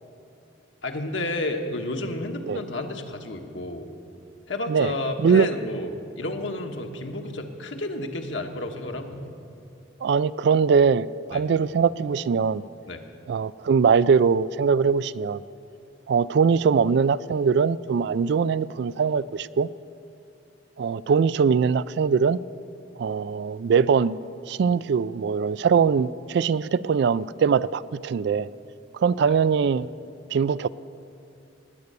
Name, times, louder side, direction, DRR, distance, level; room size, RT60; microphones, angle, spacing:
voice 1, 0.8-3.9 4.5-9.3 11.3-11.4 12.9-13.0 29.3-29.4, left 2 dB, 70° left, 1.3 m, -31 dB
voice 2, 10.0-12.6 13.3-15.4 16.1-19.7 20.8-22.4 23.0-24.2 24.5-28.5 28.9-29.9 30.3-30.7, right 6 dB, 60° right, 0.3 m, -22 dB
18.5 x 9.6 x 6.8 m
head